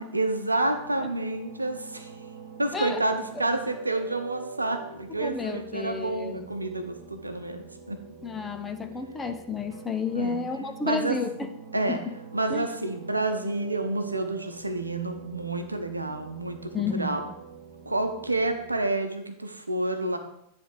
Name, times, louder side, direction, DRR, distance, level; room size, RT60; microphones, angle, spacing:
voice 1, 0.0-2.1 2.6-8.0 10.1-10.4 10.8-11.2 11.7-12.0 12.3-17.2 17.9-20.2, right 2 dB, 80° right, 7 dB, 0.8 m, -29 dB
sound 1, 0.6-18.9, right 5 dB, 50° right, 1.7 m, -46 dB
voice 2, 5.2-6.5 8.2-11.5 11.9-12.1 12.5-12.7 16.7-17.1, left 4 dB, 15° left, 6 dB, 0.8 m, -31 dB
10.0 x 3.5 x 6.7 m, 0.79 s
figure-of-eight pair, 90°, 0 cm